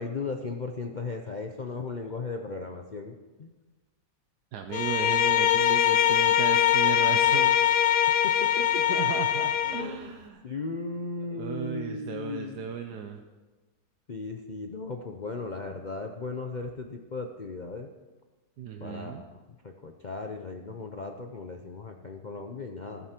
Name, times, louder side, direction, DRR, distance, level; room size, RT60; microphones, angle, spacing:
voice 1, 0.0-3.5 8.2-9.0 9.6-10.1 10.4-12.8 14.1-17.9 18.8-23.1, left 3 dB, 40° left, 4 dB, 0.6 m, -37 dB
voice 2, 4.5-7.6 8.9-10.4 11.3-13.2 18.6-19.2, right 8 dB, 75° right, 4 dB, 1.4 m, -35 dB
Bowed string instrument, 4.7-9.9, left 10 dB, 75° left, 1.2 m, -23 dB
15.0 x 13.5 x 4.5 m, 1.2 s
omnidirectional pair, 1.8 m